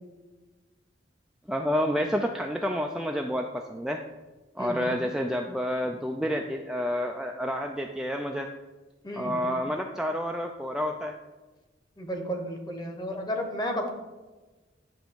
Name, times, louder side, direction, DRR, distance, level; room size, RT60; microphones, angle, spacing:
voice 1, 1.5-4.0 4.6-8.5 9.1-11.1, equal, 5° right, 2 dB, 0.3 m, -29 dB
voice 2, 4.6-4.9 6.2-6.3 9.0-9.5 12.0-13.9, equal, 20° left, 3 dB, 1.1 m, -33 dB
9.5 x 3.4 x 6.9 m, 1.2 s
head